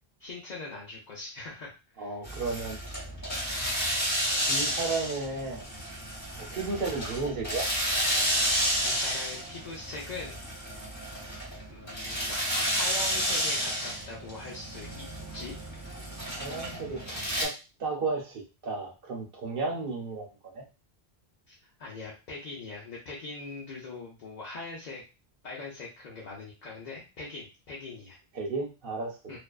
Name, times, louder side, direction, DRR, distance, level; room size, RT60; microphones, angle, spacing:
voice 1, 0.2-2.2 8.8-10.4 11.7-15.1 15.3-15.6 21.5-21.6 21.8-25.0 25.4-28.2 29.3-29.4, left 3 dB, 50° left, -4 dB, 0.7 m, -41 dB
voice 2, 2.0-2.8 4.5-5.6 6.4-7.7 16.3-20.3 20.5-20.6 28.3-29.4, right 3 dB, 60° right, 0 dB, 0.9 m, -33 dB
sound 1, 2.2-17.5, equal, 15° left, 1.0 m, -31 dB
2.5 x 2.2 x 2.3 m, 0.30 s
omnidirectional pair, 1.1 m